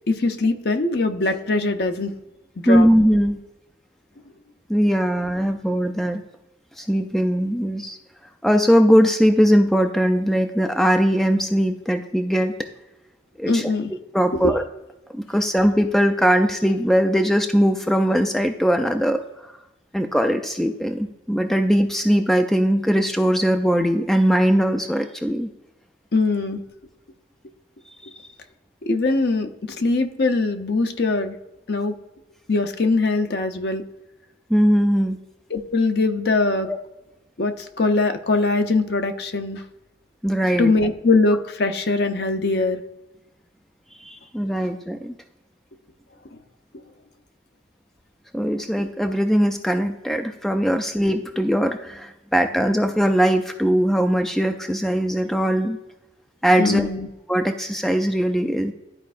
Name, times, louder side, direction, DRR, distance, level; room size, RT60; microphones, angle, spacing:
voice 1, 0.1-2.1 2.6-2.9 13.5-13.9 14.3-14.5 26.1-26.6 28.8-31.4 31.7-32.0 32.5-33.8 35.5-36.7 37.4-39.6 40.6-42.8 46.3-46.4 56.6-57.1, left 3 dB, 55° left, 6 dB, 0.7 m, -22 dB
voice 2, 2.7-3.4 4.7-6.2 6.8-8.0 8.4-12.6 13.4-13.7 14.1-14.6 15.1-19.5 19.9-25.5 34.5-35.2 36.7-36.8 40.2-40.7 44.0-45.1 48.3-55.8 56.4-56.9 57.3-58.7, equal, ahead, 5 dB, 0.4 m, -20 dB
12.5 x 4.6 x 2.5 m, 0.96 s
head